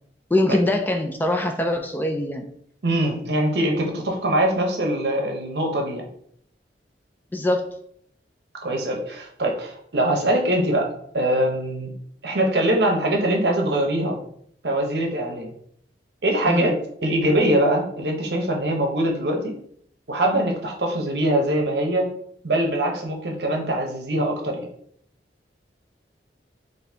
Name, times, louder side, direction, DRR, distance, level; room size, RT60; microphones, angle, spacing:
voice 1, 0.3-2.5 7.3-7.7 16.5-16.7, left 1 dB, 10° left, 4 dB, 0.3 m, -23 dB
voice 2, 2.8-6.1 8.6-11.9 12.2-14.2 14.6-15.5 16.2-16.7 17.0-19.5 20.1-22.1 22.4-24.7, right 1 dB, 65° right, 1 dB, 0.8 m, -23 dB
4.1 x 2.7 x 3.4 m, 0.66 s
head